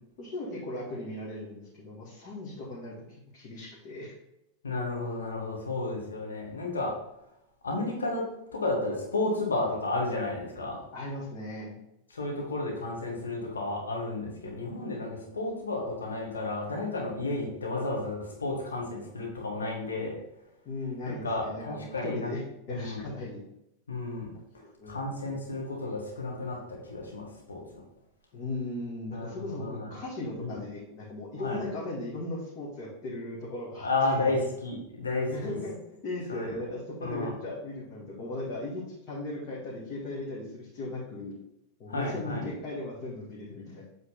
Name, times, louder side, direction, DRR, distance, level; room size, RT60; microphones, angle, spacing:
voice 1, 0.2-3.0 3.3-4.1 10.9-11.8 20.7-22.4 22.7-23.4 24.6-25.0 28.3-33.9 34.1-34.3 35.3-35.8 36.0-41.3 41.8-43.8, left 2 dB, 40° left, -7 dB, 1.9 m, -37 dB
voice 2, 4.6-7.0 7.6-10.8 12.1-20.2 21.0-22.3 22.7-23.0 23.9-24.3 24.8-27.8 29.1-29.9 30.4-30.6 31.4-31.6 33.8-35.6 36.3-36.6 37.0-37.3 41.9-42.5, left 2 dB, 70° left, 0 dB, 1.7 m, -32 dB
8.1 x 3.9 x 3.9 m, 0.83 s
figure-of-eight pair, 90°, 0 cm